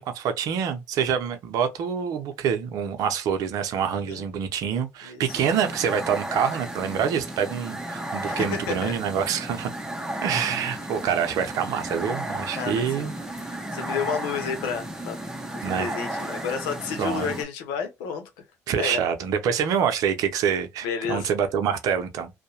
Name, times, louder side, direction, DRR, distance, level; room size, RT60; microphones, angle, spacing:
voice 1, 0.0-9.7 10.2-13.1 15.6-16.0 17.0-17.3 18.7-22.3, right 7 dB, 70° right, 0.6 m, -26 dB
voice 2, 3.9-4.3 5.0-5.4 8.3-8.9 12.6-13.1 13.4-15.2 15.5-18.2 18.8-19.0 20.8-21.3, left 6 dB, 85° left, 0.7 m, -31 dB
sound 1, 5.3-17.4, right 1 dB, 10° right, 0.8 m, -34 dB
2.7 x 2.1 x 2.7 m
supercardioid pair, 70°, 6 cm